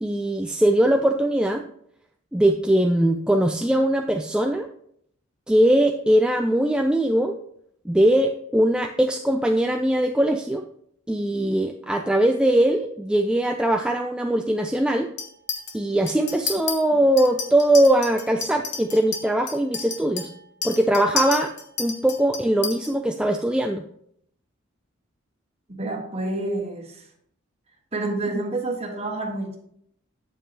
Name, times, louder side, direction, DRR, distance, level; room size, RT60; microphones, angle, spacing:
voice 1, 0.0-1.7 2.3-4.7 5.5-7.4 7.9-10.6 11.1-15.1 15.7-20.3 20.6-21.5 21.8-23.8, right 1 dB, 5° right, 3 dB, 0.3 m, -21 dB
Chink clink, 15.2-15.7 16.1-16.7 17.2-22.9, left 5 dB, 55° left, 1.3 m, -31 dB
voice 2, 25.8-27.0 27.9-29.6, right 2 dB, 30° right, 1 dB, 1.5 m, -28 dB
8.3 x 7.4 x 2.9 m, 0.69 s
head